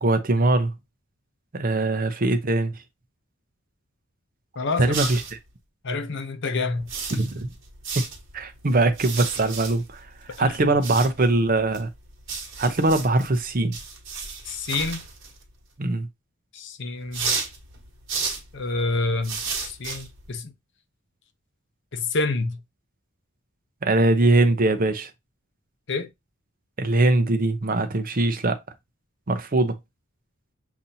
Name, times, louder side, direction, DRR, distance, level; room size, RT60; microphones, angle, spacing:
voice 1, 0.0-0.7 1.5-2.7 4.8-5.2 7.1-7.5 8.3-10.0 10.4-11.9 12.6-13.8 15.8-16.1 23.8-25.1 26.8-28.6 29.3-29.7, right 2 dB, 40° right, 0.7 m, -21 dB
voice 2, 4.6-4.9 5.8-6.9 10.3-10.7 14.5-15.0 16.5-17.3 18.5-20.5 21.9-22.6 25.9-26.1, left 3 dB, 60° left, 0.7 m, -28 dB
sound 1, 4.9-5.5 6.7-15.6 17.1-20.4, right 5 dB, 60° right, 1.5 m, -34 dB
7.0 x 2.7 x 2.8 m
head